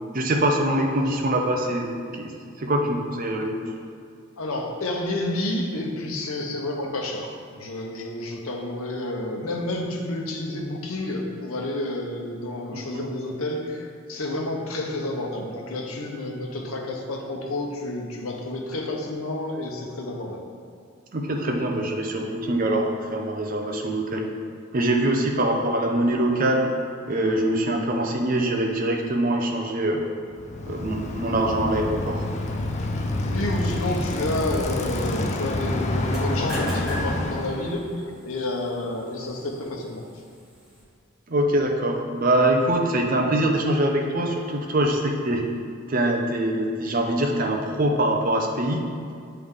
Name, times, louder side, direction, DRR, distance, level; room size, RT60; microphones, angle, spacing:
voice 1, 0.1-2.3 2.6-3.7 12.7-13.0 21.1-24.3 24.7-26.7 27.1-30.1 30.7-32.2 41.3-45.4 45.9-48.8, right 1 dB, 40° right, 2 dB, 0.6 m, -24 dB
voice 2, 4.4-20.5 32.9-40.0, left 1 dB, 90° left, 1 dB, 0.9 m, -30 dB
Bicycle, 30.3-37.8, left 1 dB, 35° left, 0.4 m, -28 dB
sound 1, 36.0-40.8, equal, ahead, 1.2 m, -39 dB
9.4 x 3.4 x 3.7 m, 2.3 s
head